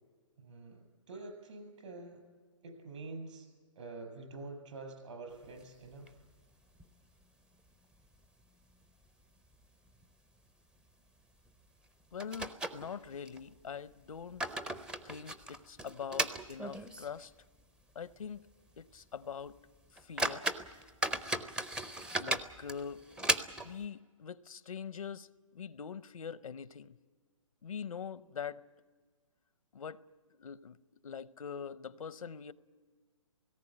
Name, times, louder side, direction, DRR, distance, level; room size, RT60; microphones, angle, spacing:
voice 1, 0.4-0.8 1.1-2.2 2.6-3.5 3.7-6.2, right 3 dB, 60° right, 7.0 m, -46 dB
sound 1, 5.5-6.4 6.8-6.9 7.2-7.3 7.9-8.4 8.7-8.8 9.4-9.6 9.9-10.1 11.5-11.6 12.2-13.4 14.0-17.2 17.6-17.7 18.2-18.4 18.8-18.9 19.5-19.6 20.0-23.8, right 1 dB, 5° right, 0.5 m, -37 dB
voice 2, 12.1-14.5 15.0-17.3 17.9-18.5 18.8-19.5 19.9-20.5 22.2-23.0 23.6-25.3 25.5-27.0 27.6-28.6 29.7-30.0 30.4-30.8 31.0-32.5, left 7 dB, 80° left, 0.8 m, -43 dB
18.5 x 17.0 x 9.9 m
hypercardioid pair, 145°, 18 cm